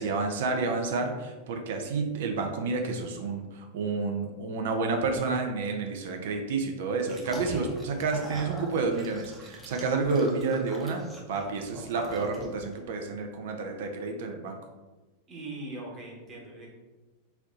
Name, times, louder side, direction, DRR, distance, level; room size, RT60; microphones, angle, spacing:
voice 1, 0.0-14.6, right 4 dB, 55° right, 4 dB, 0.5 m, -30 dB
sound 1, 7.0-12.7, equal, 10° right, 0.8 m, -43 dB
voice 2, 15.3-16.7, right 2 dB, 30° right, -2 dB, 1.3 m, -40 dB
4.1 x 2.7 x 3.9 m, 1.2 s
figure-of-eight pair, 90°, 0 cm